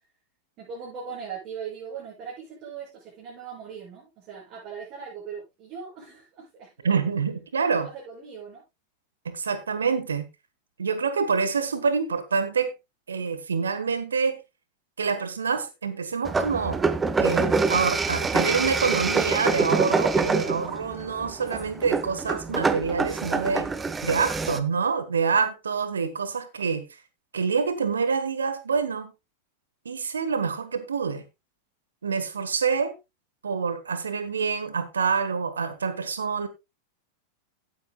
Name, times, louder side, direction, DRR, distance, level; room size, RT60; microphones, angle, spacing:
voice 1, 0.6-7.0 7.7-8.6, right 6 dB, 35° right, 6.6 m, -39 dB
voice 2, 6.8-7.9 9.2-10.2 10.8-12.7 13.1-14.4 15.0-16.8 17.2-23.7 24.0-26.8 27.3-29.1 29.8-31.2 32.0-32.9 33.4-36.5, right 5 dB, 70° right, 1.5 m, -26 dB
sound 1, 16.3-24.6, right 4 dB, 15° right, 0.9 m, -26 dB
17.0 x 8.6 x 2.3 m
figure-of-eight pair, 90°, 0 cm